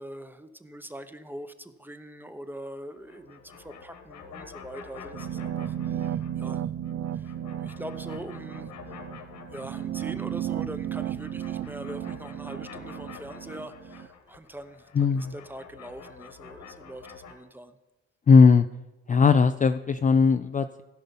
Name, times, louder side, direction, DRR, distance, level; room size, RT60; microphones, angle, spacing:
voice 1, 0.0-9.0 9.5-17.8, right 1 dB, 5° right, 10 dB, 0.8 m, -43 dB
sound 1, 2.9-6.5 6.8-10.5 10.8-17.3, left 6 dB, 75° left, 1.7 m, -48 dB
sound 2, 5.1-14.1, right 10 dB, 55° right, 0.4 m, -34 dB
voice 2, 15.0-15.3 18.3-18.7 19.1-20.8, left 5 dB, 25° left, 9 dB, 0.4 m, -18 dB
15.5 x 5.6 x 5.4 m, 1.1 s
cardioid pair, 90°, 30 cm